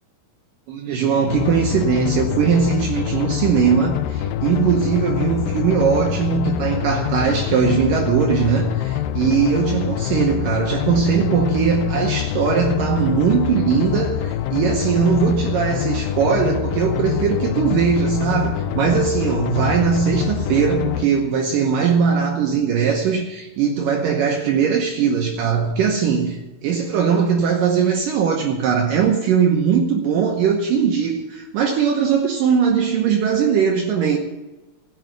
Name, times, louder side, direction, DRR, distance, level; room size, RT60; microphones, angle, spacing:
voice 1, 0.7-34.2, right 6 dB, 70° right, 2.5 m, -20 dB
sound 1, 1.3-21.1, left 11 dB, 80° left, 2.1 m, -25 dB
16.5 x 5.6 x 8.9 m
omnidirectional pair, 4.4 m